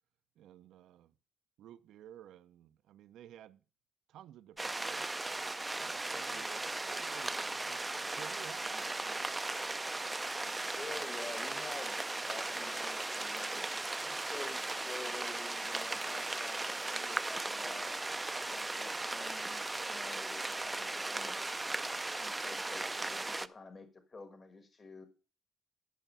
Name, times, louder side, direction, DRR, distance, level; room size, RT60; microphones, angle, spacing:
voice 1, 0.4-1.1 1.6-3.6 4.1-5.2 5.8-9.5, right 11 dB, 80° right, 0.5 m, -54 dB
sound 1, 4.6-23.5, right 2 dB, 15° right, 0.4 m, -37 dB
voice 2, 6.1-6.4 10.7-12.0 12.3-13.7 14.0-17.9 18.4-21.4 22.2-25.1, left 3 dB, 35° left, 1.4 m, -49 dB
11.5 x 5.8 x 5.5 m
cardioid pair, 90°, 0 cm